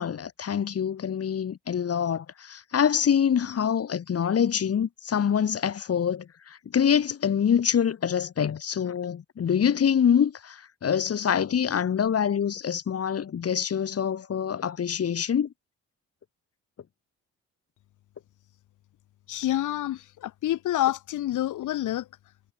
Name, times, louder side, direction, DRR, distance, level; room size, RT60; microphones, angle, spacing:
voice 1, 0.0-15.5, left 8 dB, 50° left, 3.7 m, -25 dB
voice 2, 19.3-22.1, left 13 dB, 80° left, 6.4 m, -28 dB
cardioid pair, 90°, 30 cm